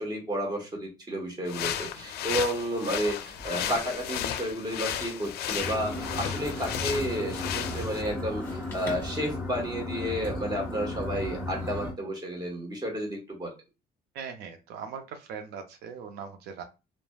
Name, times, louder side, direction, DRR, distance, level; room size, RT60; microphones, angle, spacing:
voice 1, 0.0-7.5 7.7-13.5, equal, 25° right, 1 dB, 1.1 m, -31 dB
sound 1, 1.5-8.0, left 10 dB, 70° left, 0.4 m, -34 dB
sound 2, 3.0-9.3, left 2 dB, 15° left, 1.3 m, -47 dB
sound 3, 5.6-11.9, left 2 dB, 5° right, 1.3 m, -35 dB
voice 2, 14.1-16.6, right 6 dB, 80° right, 6 dB, 0.5 m, -40 dB
3.2 x 2.0 x 2.3 m, 0.28 s
cardioid pair, 110°, 17 cm